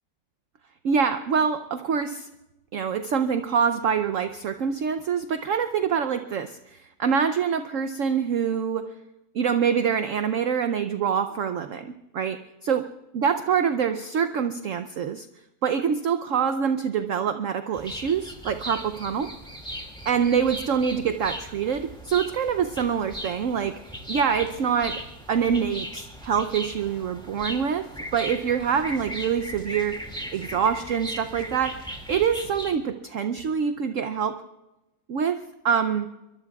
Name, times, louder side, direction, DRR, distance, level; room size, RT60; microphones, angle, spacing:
voice 1, 0.8-2.3 2.7-8.9 9.3-12.9 13.1-15.3 15.6-19.3 20.1-25.0 25.3-30.0 30.3-34.4 35.1-35.4 35.6-36.1, right 7 dB, 65° right, 9 dB, 0.8 m, -25 dB
sound 1, 17.7-32.8, equal, ahead, 2.1 m, -38 dB
25.0 x 23.0 x 2.3 m, 0.97 s
omnidirectional pair, 2.0 m